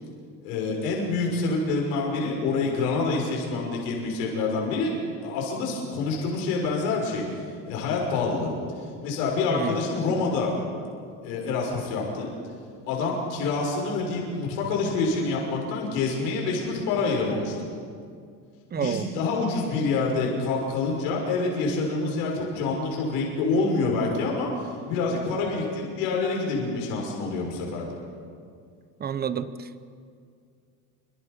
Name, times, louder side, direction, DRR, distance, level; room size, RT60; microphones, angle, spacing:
voice 1, 0.4-4.9 5.2-7.2 7.7-8.5 9.0-10.5 11.2-12.3 12.9-17.5 18.7-27.9, left 3 dB, 90° left, -1 dB, 6.5 m, -27 dB
voice 2, 18.7-19.1 29.0-29.8, right 7 dB, 25° right, 12 dB, 1.1 m, -29 dB
29.0 x 26.0 x 5.3 m, 2.2 s
cardioid pair, 130°, 37 cm